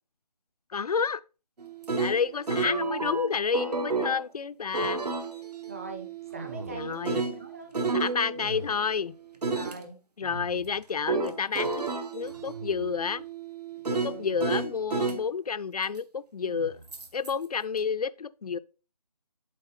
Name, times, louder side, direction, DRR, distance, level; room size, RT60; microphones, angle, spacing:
voice 1, 0.7-1.2 2.0-5.1 6.7-7.2 7.9-9.1 10.2-11.8 12.1-13.3 13.9-16.8 17.1-18.6, left 6 dB, 65° left, 0.4 m, -30 dB
sound 1, 1.6-4.2 4.7-8.8 9.4-9.8 11.1-15.2 16.9-17.3, right 3 dB, 70° right, 1.0 m, -31 dB
voice 2, 5.7-8.1 9.5-10.0 14.0-14.3, right 3 dB, 20° right, 0.6 m, -43 dB
sound 2, 6.3-7.2 8.3-9.1 10.2-11.0 12.2-13.2 14.3-14.8 16.4-17.1, right 2 dB, 45° right, 0.9 m, -45 dB
7.5 x 4.2 x 3.0 m
figure-of-eight pair, 155°, 21 cm